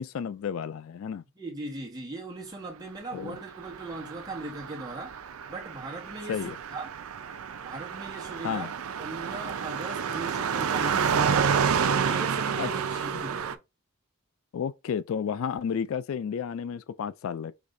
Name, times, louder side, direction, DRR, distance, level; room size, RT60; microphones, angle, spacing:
voice 1, 0.0-1.2 3.1-3.4 6.3-6.6 8.4-8.7 12.6-12.7 14.5-17.5, left 7 dB, 70° left, 0.3 m, -32 dB
voice 2, 1.3-5.1 5.5-6.9 7.6-8.7 9.0-11.5 11.9-13.4, right 2 dB, 20° right, 1.4 m, -39 dB
Car passing by, 3.6-13.5, right 6 dB, 80° right, 0.5 m, -29 dB
5.0 x 3.5 x 2.6 m
head